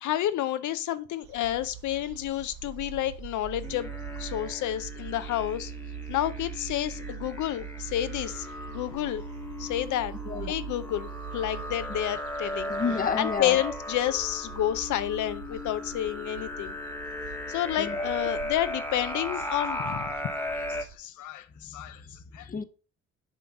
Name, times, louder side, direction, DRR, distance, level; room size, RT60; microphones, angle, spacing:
voice 1, 0.0-3.9 4.2-5.7 6.1-9.2 9.6-10.1 10.5-12.7 13.2-16.7 17.5-20.1 20.5-22.5, left 12 dB, 75° left, 0.6 m, -30 dB
sound 1, 1.2-21.0, right 8 dB, 75° right, 0.9 m, -43 dB
sound 2, 3.6-20.8, left 1 dB, 5° left, 1.1 m, -36 dB
voice 2, 12.7-13.6 17.8-18.1 22.0-22.1 22.4-22.6, left 6 dB, 30° left, 0.7 m, -30 dB
7.3 x 3.8 x 5.8 m
cardioid pair, 90°, 30 cm